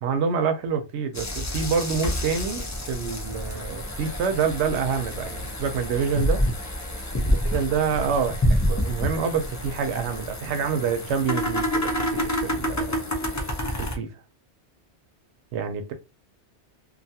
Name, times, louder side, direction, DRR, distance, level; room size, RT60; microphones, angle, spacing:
voice 1, 0.0-6.4 7.3-13.0 13.8-14.1 15.5-15.9, right 6 dB, 85° right, 0.9 m, -27 dB
sound 1, 1.1-13.9, equal, 25° left, 0.4 m, -28 dB
2.6 x 2.3 x 2.7 m
omnidirectional pair, 1.1 m